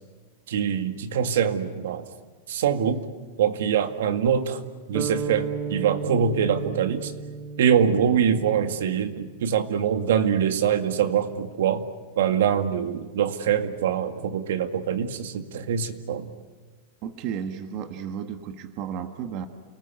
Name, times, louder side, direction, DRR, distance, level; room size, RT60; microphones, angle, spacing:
voice 1, 0.5-2.1 2.5-3.1 3.4-4.6 4.9-7.1 7.6-11.9 12.2-16.3, right 8 dB, 75° right, 8 dB, 2.0 m, -24 dB
sound 1, 4.9-9.2, right 6 dB, 20° right, 1.1 m, -34 dB
voice 2, 17.0-19.5, right 8 dB, 35° right, 8 dB, 1.5 m, -33 dB
29.5 x 19.5 x 9.5 m, 1.4 s
supercardioid pair, 175°, 0 cm